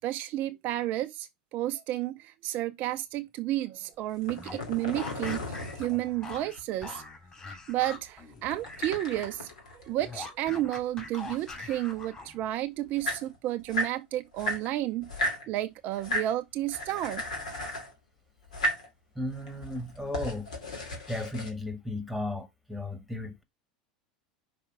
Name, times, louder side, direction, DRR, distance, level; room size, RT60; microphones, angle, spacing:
voice 1, 0.0-7.0 7.5-9.5 9.8-17.2, right 15 dB, 45° right, 0.4 m, -32 dB
sound 1, 4.1-6.6 8.4-10.5 10.8-12.0 12.6-12.7 12.9-14.0 14.4-15.4 15.9-16.3 16.7-17.9 18.4-18.9 19.4-21.5, equal, 75° left, 2.3 m, -35 dB
sound 2, 4.3-9.0 9.3-12.5, left 3 dB, 25° left, 3.5 m, -44 dB
voice 2, 19.1-20.5 21.1-23.4, left 1 dB, ahead, 1.5 m, -35 dB
5.7 x 4.2 x 4.8 m
figure-of-eight pair, 80°, 4 cm